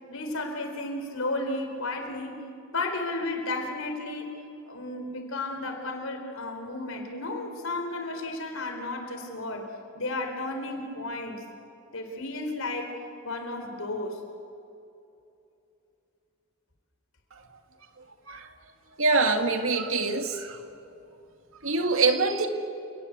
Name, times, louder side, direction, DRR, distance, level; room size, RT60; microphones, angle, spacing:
voice 1, 0.1-4.3 4.7-9.7 9.9-11.4 11.9-13.0 13.2-14.2, left 2 dB, 90° left, 5 dB, 4.2 m, -33 dB
voice 2, 19.0-20.6 21.6-22.5, right 3 dB, 75° right, 5 dB, 2.1 m, -24 dB
28.5 x 19.0 x 8.0 m, 2.7 s
head